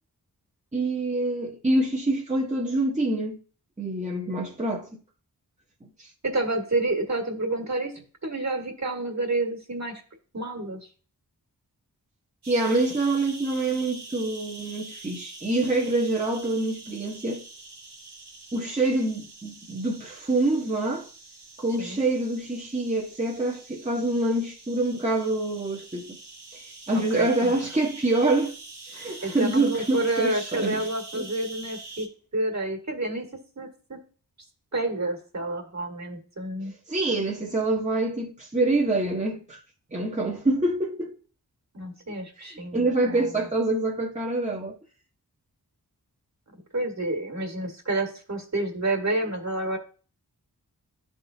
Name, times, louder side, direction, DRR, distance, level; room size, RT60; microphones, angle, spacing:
voice 1, 0.7-3.4 3.8-5.0 5.8-6.1 12.5-17.4 18.5-21.1 21.6-26.2 26.5-28.6 28.9-30.9 31.1-31.3 36.9-39.6 39.9-41.1 42.4-44.8, right 2 dB, 20° right, 1.1 m, -26 dB
voice 2, 6.2-7.9 8.2-10.0 10.3-10.9 21.8-22.0 26.9-27.5 29.2-32.1 32.3-33.3 33.6-34.0 34.7-36.7 41.7-43.5 46.7-49.8, right 2 dB, 45° right, 1.8 m, -29 dB
sound 1, 12.4-32.1, right 2 dB, 90° right, 1.3 m, -45 dB
11.0 x 3.7 x 2.7 m
cardioid pair, 40°, 39 cm